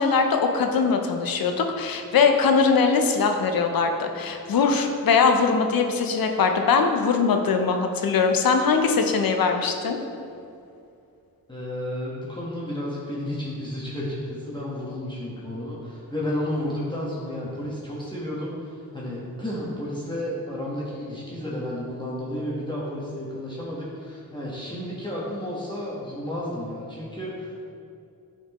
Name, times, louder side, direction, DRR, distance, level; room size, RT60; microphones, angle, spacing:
voice 1, 0.0-10.0, left 5 dB, 85° left, 5 dB, 0.6 m, -21 dB
voice 2, 11.5-27.6, left 1 dB, 15° left, -7 dB, 1.3 m, -32 dB
8.3 x 4.4 x 3.0 m, 2.5 s
wide cardioid pair, 75°, 34 cm